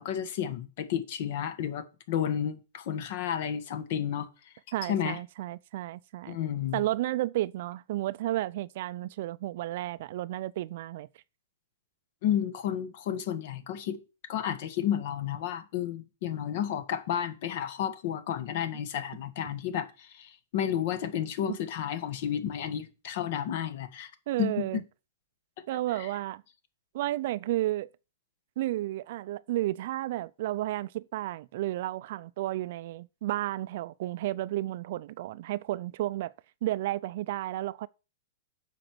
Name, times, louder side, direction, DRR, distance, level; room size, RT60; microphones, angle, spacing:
voice 1, 0.0-4.3 4.9-5.2 6.3-6.8 12.2-14.0 14.3-24.1 24.4-24.8 26.0-26.1, left 9 dB, 55° left, 1.4 m, -32 dB
voice 2, 4.7-6.4 6.7-11.1 18.7-18.8 21.5-21.6 24.3-24.8 25.7-26.4 26.9-27.9 28.6-36.3 36.6-37.9, right 15 dB, 60° right, 0.4 m, -32 dB
7.6 x 5.1 x 6.2 m
hypercardioid pair, 135°, 0 cm